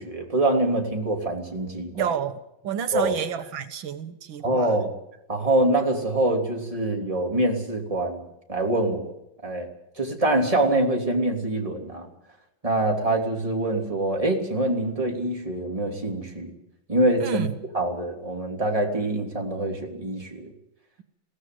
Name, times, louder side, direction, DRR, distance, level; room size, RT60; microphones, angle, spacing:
voice 1, 0.0-2.1 2.9-3.1 4.4-4.9 5.3-9.1 9.4-9.7 10.0-12.1 12.6-16.5 16.9-17.5 17.7-20.5, right 1 dB, 15° right, 1 dB, 3.2 m, -25 dB
voice 2, 1.9-4.8 17.2-17.5, right 8 dB, 85° right, 9 dB, 2.0 m, -30 dB
21.0 x 16.5 x 7.8 m, 0.85 s
omnidirectional pair, 2.1 m